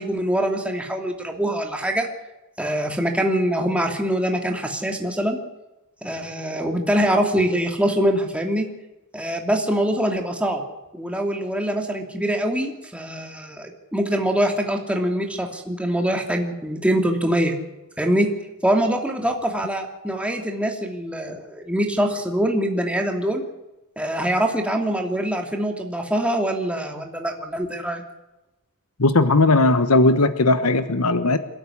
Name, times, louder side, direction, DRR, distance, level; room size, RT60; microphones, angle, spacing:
voice 1, 0.0-2.1 2.6-5.4 6.0-8.7 9.1-10.6 10.9-17.5 18.0-18.3 18.6-23.4 24.0-28.0, right 1 dB, 5° right, 2 dB, 2.7 m, -24 dB
voice 2, 29.0-31.4, left 2 dB, 90° left, 11 dB, 1.2 m, -17 dB
28.5 x 13.0 x 9.9 m, 1.0 s
head